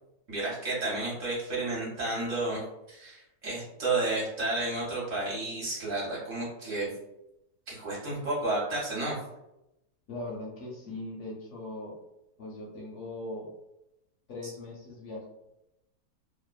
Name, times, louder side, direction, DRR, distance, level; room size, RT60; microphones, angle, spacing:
voice 1, 0.3-2.6 2.9-6.9 7.7-9.2, right 2 dB, 60° right, -6 dB, 1.1 m, -31 dB
voice 2, 10.1-12.0 12.4-13.5 14.3-15.3, left 2 dB, 70° left, -3 dB, 0.7 m, -39 dB
2.7 x 2.1 x 2.3 m, 0.88 s
omnidirectional pair, 1.6 m